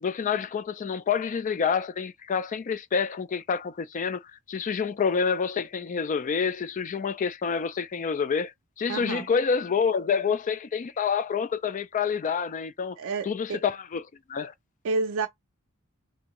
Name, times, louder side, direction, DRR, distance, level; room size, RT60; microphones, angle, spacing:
voice 1, 0.0-13.0 13.2-14.0 14.3-14.5, left 6 dB, 35° left, 0.3 m, -28 dB
voice 2, 8.9-9.3 13.0-13.6 14.8-15.3, right 3 dB, 65° right, 0.4 m, -29 dB
3.3 x 2.7 x 2.9 m
head